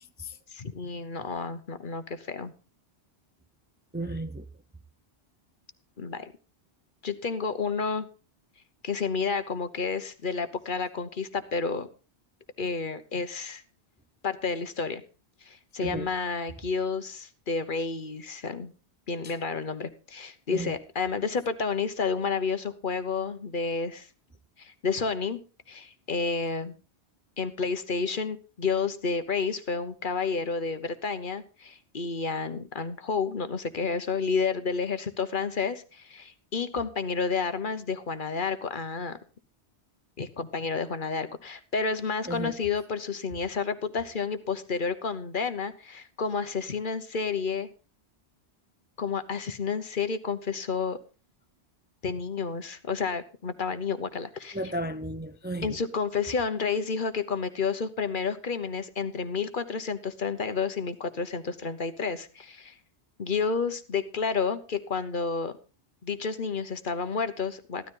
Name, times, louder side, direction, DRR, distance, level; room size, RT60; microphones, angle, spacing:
voice 1, 0.5-2.5 6.0-6.3 7.0-8.1 8.8-11.9 12.6-13.6 14.2-15.0 15.4-18.7 19.1-24.1 24.6-25.4 25.7-26.7 27.4-39.2 40.2-47.7 49.0-51.0 52.0-54.6 55.6-62.7 63.2-65.5 66.0-67.9, left 5 dB, 50° left, 1.1 m, -30 dB
voice 2, 3.9-4.4 15.8-16.1 20.5-20.7 42.3-42.6 54.5-55.8, right 1 dB, 10° right, 0.5 m, -33 dB
15.0 x 12.5 x 3.8 m
omnidirectional pair, 1.1 m